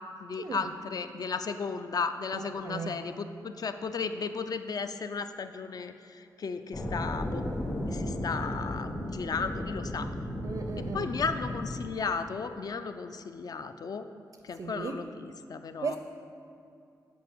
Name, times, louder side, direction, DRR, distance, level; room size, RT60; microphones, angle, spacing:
voice 1, 0.2-7.4 7.9-10.1 10.9-14.1 14.4-16.0, left 5 dB, 55° left, 9 dB, 0.4 m, -35 dB
voice 2, 2.3-2.9 10.4-11.1 14.6-15.1 15.8-16.0, right 5 dB, 55° right, 6 dB, 0.4 m, -36 dB
sound 1, 6.7-11.8, left 1 dB, 40° left, 1.2 m, -34 dB
7.0 x 5.1 x 4.6 m, 2.5 s
cardioid pair, 55°, 8 cm